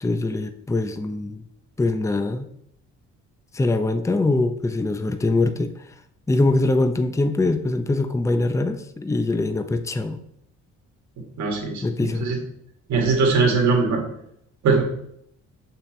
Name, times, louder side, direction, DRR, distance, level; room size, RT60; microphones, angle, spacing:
voice 1, 0.0-1.4 1.8-2.5 3.5-5.7 6.3-10.2 11.8-12.3, left 2 dB, 10° left, 9 dB, 0.5 m, -23 dB
voice 2, 11.4-11.8 12.2-12.4 12.9-14.0 14.6-14.8, right 4 dB, 70° right, 0 dB, 2.0 m, -20 dB
6.6 x 5.9 x 3.2 m, 0.72 s
cardioid pair, 90°, 30 cm